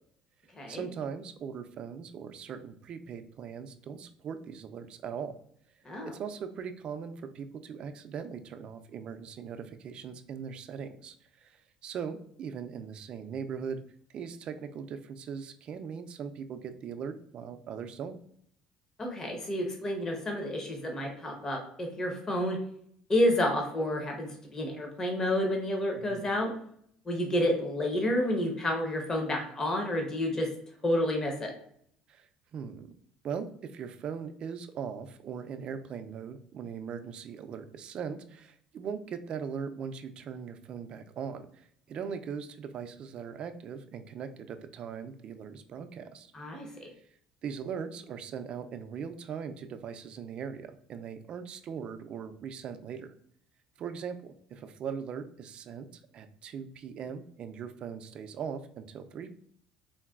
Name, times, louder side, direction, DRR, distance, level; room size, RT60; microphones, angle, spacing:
voice 1, 0.7-5.4 6.1-13.8 14.1-18.2 26.0-26.3 32.1-32.3 32.5-32.9 33.2-46.3 46.6-46.7 47.4-53.1 53.8-55.9 56.1-59.3, right 7 dB, 50° right, 9 dB, 0.3 m, -40 dB
voice 2, 19.0-22.6 23.1-26.5 27.1-30.5 30.8-31.5 46.3-46.9, left 1 dB, 25° left, 2 dB, 0.7 m, -30 dB
3.9 x 2.1 x 2.3 m, 0.66 s
cardioid pair, 110°, 2 cm